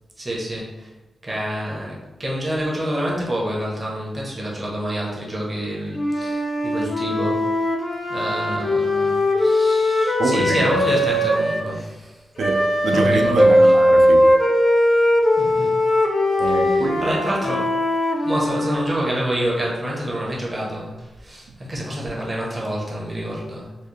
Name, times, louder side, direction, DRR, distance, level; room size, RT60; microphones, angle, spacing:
voice 1, 0.2-0.9 1.2-7.5 8.1-12.2 12.9-13.7 15.4-15.8 16.4-17.8 18.2-23.7, equal, 20° right, 0.8 m, -27 dB
Wind instrument woodwind instrument, 5.9-11.7 12.4-18.9, left 1 dB, 30° left, 0.4 m, -19 dB
voice 2, 10.2-10.6 12.4-14.4 16.4-17.1, right 3 dB, 70° right, 0.3 m, -24 dB
4.0 x 2.4 x 3.0 m
wide cardioid pair, 175°, 0 cm